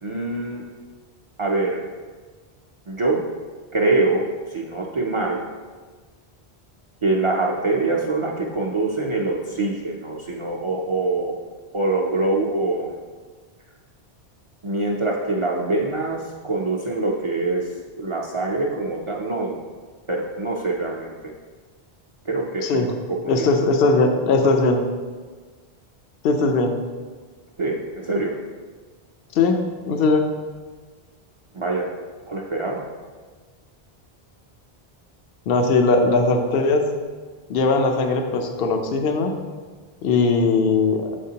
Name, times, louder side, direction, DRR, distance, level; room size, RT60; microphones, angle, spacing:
voice 1, 0.0-0.6 1.4-1.8 2.9-3.2 3.7-5.4 7.0-11.4 11.7-13.0 14.6-17.7 18.0-19.6 20.1-21.3 22.3-23.5 27.6-28.3 31.5-31.9 32.3-32.8, right 2 dB, 40° right, -1 dB, 0.4 m, -24 dB
voice 2, 23.3-24.8 26.2-26.7 29.3-29.6 29.9-30.2 35.5-36.9 37.5-39.3 40.0-41.1, left 3 dB, 70° left, 4 dB, 0.8 m, -19 dB
7.2 x 5.1 x 2.8 m, 1.5 s
omnidirectional pair, 1.0 m